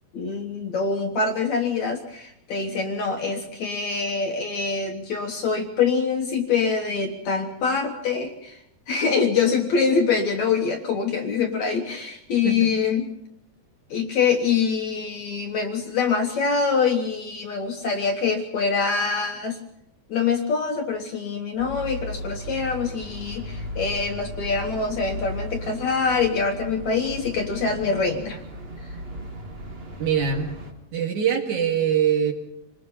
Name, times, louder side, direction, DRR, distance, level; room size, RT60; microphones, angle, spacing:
voice 1, 0.1-8.6 8.9-13.0 13.9-19.6 20.1-28.4, left 5 dB, 60° left, 3 dB, 2.2 m, -24 dB
sound 1, 21.6-30.7, equal, 40° right, 0.8 m, -36 dB
voice 2, 30.0-30.5 30.9-32.3, right 8 dB, 55° right, 3 dB, 3.2 m, -23 dB
26.0 x 19.5 x 5.5 m, 0.78 s
omnidirectional pair, 4.4 m